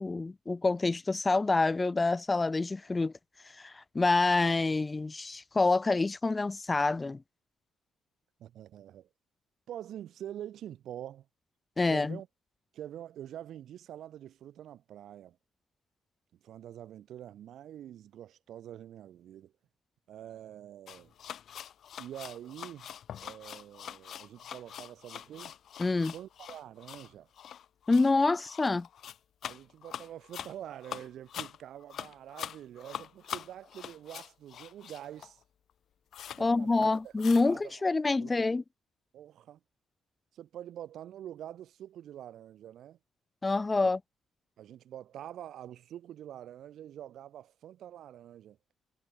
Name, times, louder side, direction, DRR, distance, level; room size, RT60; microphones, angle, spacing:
voice 1, 0.0-3.1 3.5-7.2 11.8-12.2 25.8-26.1 27.9-28.9 36.4-38.6 43.4-44.0, left 3 dB, 25° left, 0.3 m, -27 dB
voice 2, 8.4-9.1 9.7-11.3 11.9-12.3 12.7-15.4 16.4-19.5 20.1-21.1 22.0-22.9 23.2-25.6 26.1-27.3 29.5-35.4 36.3-37.1 37.4-37.8 38.2-38.4 39.1-39.6 40.3-43.0 43.8-43.9 44.6-48.6, right 11 dB, 75° right, 4.2 m, -46 dB
sound 1, 20.9-35.4 35.7-35.8 36.1-36.4 36.7-37.6, left 9 dB, 65° left, 5.3 m, -44 dB
cardioid pair, 90°, 0 cm